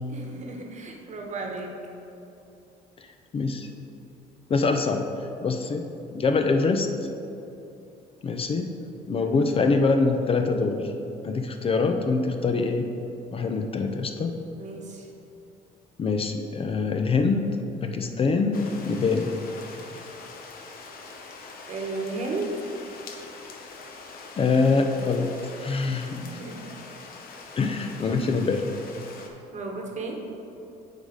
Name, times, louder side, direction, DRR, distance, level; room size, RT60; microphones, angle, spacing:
voice 1, 0.1-1.7 9.1-9.5 14.6-15.1 21.7-22.7 26.1-26.6 29.5-30.2, right 3 dB, 45° right, 1 dB, 1.1 m, -34 dB
voice 2, 3.3-3.7 4.5-5.1 5.4-5.8 6.1-6.9 8.2-8.7 9.1-10.9 11.2-12.9 13.3-14.4 16.0-19.3 24.4-26.2 27.6-28.8, left 4 dB, 35° left, 5 dB, 0.5 m, -24 dB
sound 1, 18.5-29.3, left 4 dB, 60° left, 0.9 m, -43 dB
8.1 x 4.1 x 5.0 m, 2.8 s
cardioid pair, 110°, 17 cm